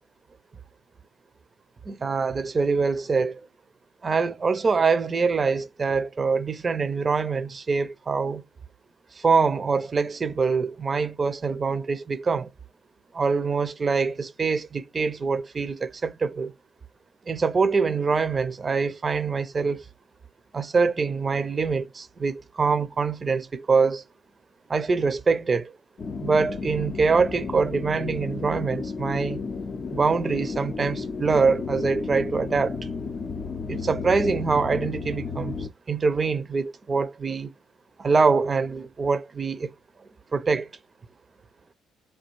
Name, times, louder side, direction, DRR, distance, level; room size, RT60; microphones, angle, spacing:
voice 1, 1.9-3.4 4.0-8.4 9.2-12.5 13.1-16.5 17.3-19.8 20.5-24.0 24.7-25.7 26.2-29.4 29.9-32.8 33.7-35.6 35.9-37.5 38.0-39.7 40.3-40.7, right 4 dB, 35° right, 0.5 m, -24 dB
sound 1, 26.0-35.7, left 4 dB, 45° left, 0.5 m, -33 dB
3.3 x 2.3 x 3.0 m
hypercardioid pair, 50°, 0 cm